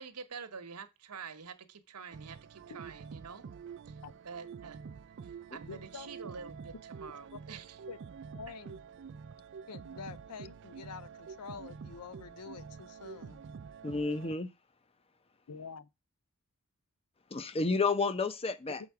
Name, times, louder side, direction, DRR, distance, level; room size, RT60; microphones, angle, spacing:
voice 1, 0.0-3.4 3.9-4.0 4.2-4.8 5.5-7.8, right 5 dB, 90° right, 1.0 m, -47 dB
sound 1, 2.1-14.4, right 6 dB, 55° right, 0.4 m, -47 dB
voice 2, 5.7-6.1 7.3-7.4 7.9-8.0 8.3-8.8 9.7-13.4 15.5-15.9, left 5 dB, 90° left, 0.5 m, -47 dB
voice 3, 13.8-14.5 17.3-18.8, left 4 dB, 25° left, 0.6 m, -31 dB
7.1 x 4.6 x 4.6 m
head